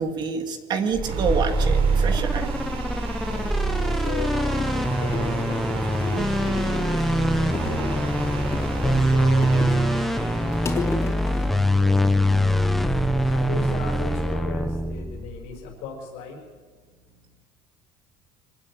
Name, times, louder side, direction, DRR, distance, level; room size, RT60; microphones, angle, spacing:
voice 1, 0.0-2.5, right 5 dB, 40° right, 5 dB, 2.7 m, -27 dB
sound 1, 0.9-15.5, equal, ahead, 1.2 m, -23 dB
sound 2, 1.0-13.1, right 6 dB, 60° right, 3.8 m, -36 dB
voice 2, 3.3-8.2 8.8-10.5 11.7-12.6 13.1-16.4, left 4 dB, 80° left, -1 dB, 5.7 m, -36 dB
sound 3, 4.0-4.8 5.1-5.9 6.4-7.2 7.5-8.1 8.5-9.9 10.2-11.6 13.2-13.6 14.1-15.2 15.5-16.0, left 4 dB, 25° left, 3.7 m, -35 dB
24.5 x 14.5 x 10.0 m, 1.5 s
cardioid pair, 140°, 11 cm